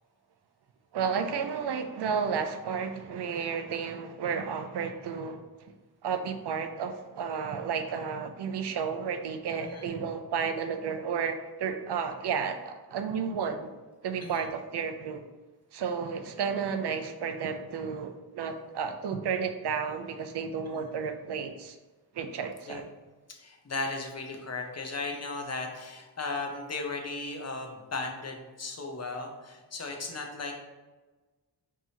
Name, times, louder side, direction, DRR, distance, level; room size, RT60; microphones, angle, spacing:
voice 1, 0.9-5.4 6.0-13.7 14.0-15.2 15.7-21.8 22.1-22.9, right 6 dB, 90° right, 7 dB, 0.5 m, -32 dB
voice 2, 23.3-30.5, left 3 dB, 40° left, 2 dB, 0.6 m, -36 dB
4.7 x 2.8 x 2.7 m, 1.2 s
wide cardioid pair, 110°, 39 cm